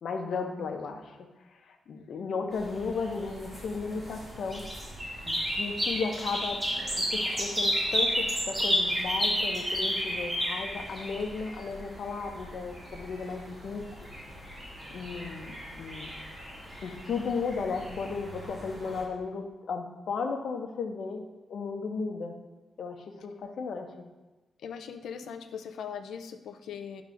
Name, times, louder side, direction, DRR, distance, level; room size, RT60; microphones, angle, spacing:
voice 1, 0.0-1.2 1.9-4.7 5.2-6.6 7.0-13.8 14.9-16.1 16.8-21.2 21.5-22.3 22.8-23.9, left 4 dB, 60° left, 4 dB, 1.0 m, -35 dB
voice 2, 1.9-2.3 24.6-27.0, left 7 dB, 90° left, 8 dB, 0.6 m, -40 dB
sound 1, 2.5-19.0, equal, 20° right, 2.4 m, -33 dB
10.5 x 4.0 x 6.4 m, 1.1 s
wide cardioid pair, 165°, 0 cm